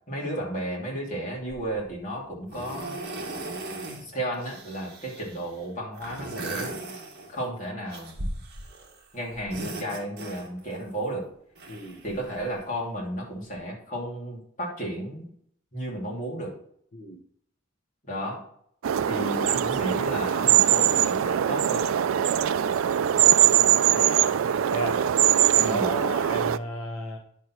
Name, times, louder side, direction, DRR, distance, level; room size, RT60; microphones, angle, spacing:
voice 1, 0.1-3.0 4.0-6.7 7.3-8.2 9.1-11.3 12.0-15.3 15.7-16.6 18.1-18.4 19.1-21.9 25.6-25.9, right 1 dB, 35° left, -3 dB, 2.9 m, -33 dB
sound 1, 1.5-1.8 2.5-4.0 4.3-5.5 5.9-7.5 7.9-9.0 9.3-10.8 11.5-12.6 13.5-13.6, right 2 dB, 50° right, 1.9 m, -37 dB
voice 2, 11.7-12.0 16.9-17.2 24.0-24.4 24.7-25.0 25.5-27.2, right 1 dB, 80° left, 3 dB, 1.2 m, -33 dB
sound 2, 18.8-26.6, right 10 dB, 75° right, 0.4 m, -22 dB
10.0 x 4.6 x 6.0 m, 0.67 s
head